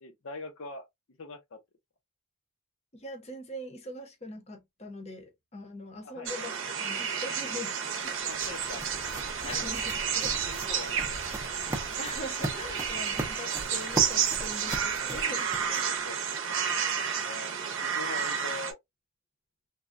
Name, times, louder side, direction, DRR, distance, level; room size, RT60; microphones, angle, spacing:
voice 1, 0.0-0.9 1.2-1.6 6.0-6.3 8.2-8.8 9.4-9.7 10.5-11.2 15.7-16.3 17.2-18.8, left 3 dB, 60° left, 0.6 m, -43 dB
voice 2, 2.9-7.8 8.0-8.3 9.4-10.5 12.0-15.5 15.8-15.9, left 1 dB, 30° left, 0.7 m, -42 dB
sound 1, 6.3-18.7, right 7 dB, 60° right, 0.7 m, -31 dB
sound 2, 7.6-16.1, right 1 dB, 15° right, 0.5 m, -39 dB
3.3 x 2.2 x 2.4 m
head